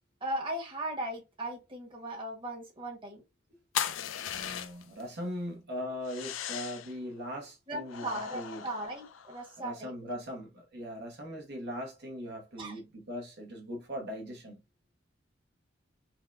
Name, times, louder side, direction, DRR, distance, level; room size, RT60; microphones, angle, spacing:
voice 1, 0.2-3.2 7.7-10.2 12.6-12.8, right 1 dB, 25° right, 1.2 m, -38 dB
sound 1, 3.7-5.0 6.0-7.0 7.9-9.5, left 9 dB, 85° left, 0.4 m, -37 dB
voice 2, 4.3-8.7 9.6-14.6, equal, 60° right, 0.9 m, -40 dB
5.3 x 2.1 x 2.5 m
head